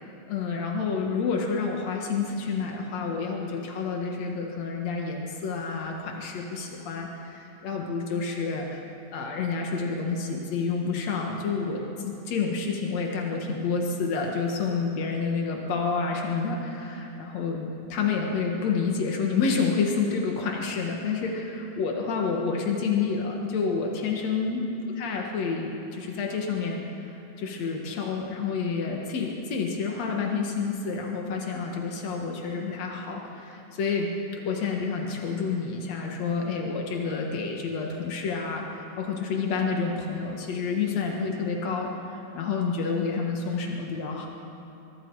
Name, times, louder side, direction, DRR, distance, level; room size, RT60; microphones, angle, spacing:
voice 1, 0.3-8.8 9.1-34.1 34.4-44.3, left 5 dB, 80° left, 0 dB, 1.5 m, -29 dB
24.0 x 23.5 x 4.8 m, 2.9 s
omnidirectional pair, 5.6 m